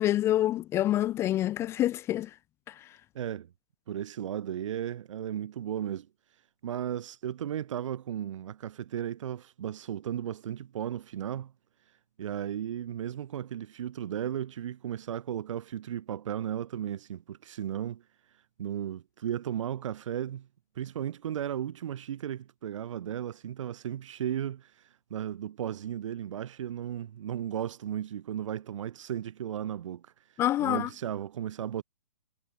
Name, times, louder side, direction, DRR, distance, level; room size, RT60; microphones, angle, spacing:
voice 1, 0.0-2.3 2.7-2.9 30.4-30.9, left 13 dB, 15° left, 0.4 m, -27 dB
voice 2, 3.1-3.5 3.9-6.1 6.6-11.5 12.2-18.0 18.6-20.5 20.7-30.1 30.6-31.8, right 10 dB, 55° right, 1.2 m, -35 dB
hypercardioid pair, 130°, 19 cm